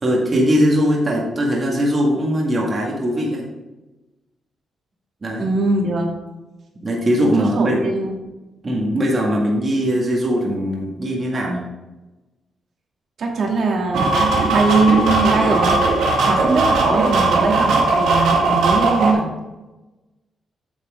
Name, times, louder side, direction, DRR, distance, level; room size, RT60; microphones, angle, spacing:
voice 1, 0.0-3.5 5.2-5.5 6.8-7.8 8.6-11.6 16.4-16.7, equal, 35° right, -2 dB, 2.1 m, -20 dB
voice 2, 5.4-6.1 7.6-8.2 13.2-15.8 16.3-19.3, right 3 dB, 60° right, -1 dB, 2.5 m, -20 dB
sound 1, 13.9-19.1, right 3 dB, 90° right, 2.0 m, -18 dB
9.0 x 6.7 x 3.6 m, 1.1 s
cardioid pair, 105°, 0 cm